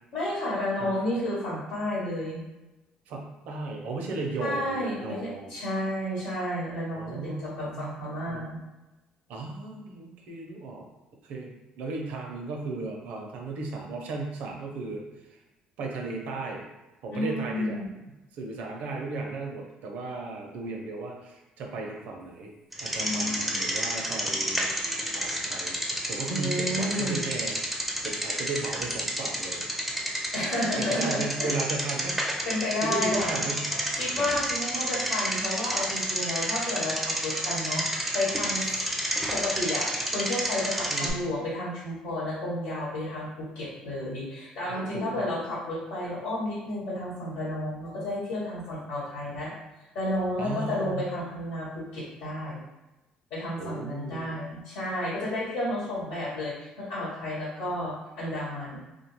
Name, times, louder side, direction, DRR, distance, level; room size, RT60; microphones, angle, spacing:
voice 1, 0.1-2.4 4.4-8.6 17.1-17.8 23.0-23.7 26.3-27.2 30.3-31.5 32.4-33.4 33.9-38.7 39.3-49.5 49.9-52.6 53.3-58.8, left 1 dB, 90° left, -7 dB, 1.1 m, -31 dB
voice 2, 3.1-5.5 7.0-8.0 8.3-8.5 9.3-10.9 11.2-11.5 11.8-15.0 15.3-15.4 15.8-16.6 17.0-17.8 18.4-22.5 22.8-24.7 25.1-25.8 26.1-27.6 28.0-29.7 30.8-32.2 32.8-33.7 40.9-41.2 44.7-45.4 50.4-51.0 53.6-54.4, right 3 dB, 75° right, 1 dB, 0.5 m, -35 dB
Bicycle, 22.7-41.1, equal, 5° right, 0.5 m, -30 dB
2.5 x 2.3 x 3.0 m, 1.0 s
supercardioid pair, 85°, 3 cm